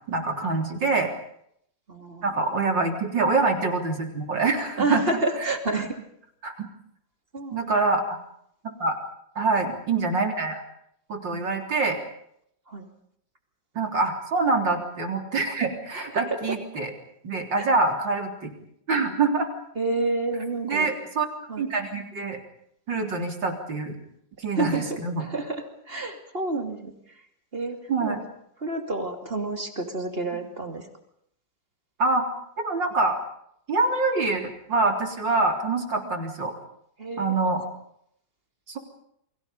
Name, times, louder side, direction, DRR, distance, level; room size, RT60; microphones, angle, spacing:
voice 1, 0.1-1.1 2.2-5.0 6.4-6.7 7.5-8.0 8.8-9.0 9.4-10.6 11.1-12.0 13.8-16.9 17.2-18.5 18.9-19.5 20.6-21.3 21.6-22.4 22.9-24.0 24.4-25.3 27.9-28.2 32.0-32.3 32.6-33.2 33.7-34.4 34.7-36.5 37.2-37.6 38.7-38.8, right 3 dB, 90° right, 3 dB, 4.2 m, -25 dB
voice 2, 1.9-2.6 4.8-6.0 7.3-7.6 11.3-11.5 12.7-12.9 15.9-16.6 17.6-17.7 19.7-20.9 21.5-21.7 24.5-27.3 27.5-28.2 28.6-30.9 36.0-36.1 37.0-37.5, right 2 dB, 30° right, 4 dB, 2.9 m, -30 dB
29.5 x 23.5 x 5.3 m, 0.72 s
omnidirectional pair, 1.9 m